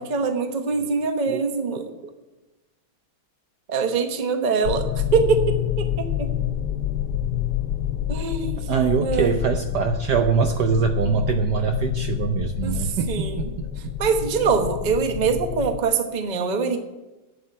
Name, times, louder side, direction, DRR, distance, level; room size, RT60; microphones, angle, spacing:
voice 1, 0.0-1.9 3.7-6.3 8.1-8.6 9.0-9.4 12.6-13.5 14.0-16.8, right 5 dB, 35° right, 6 dB, 0.8 m, -24 dB
sound 1, 4.6-15.8, left 10 dB, 70° left, 0.9 m, -28 dB
voice 2, 8.7-13.5 13.8-13.9, right 6 dB, 70° right, 6 dB, 1.0 m, -23 dB
8.2 x 8.0 x 9.1 m, 1.1 s
omnidirectional pair, 2.3 m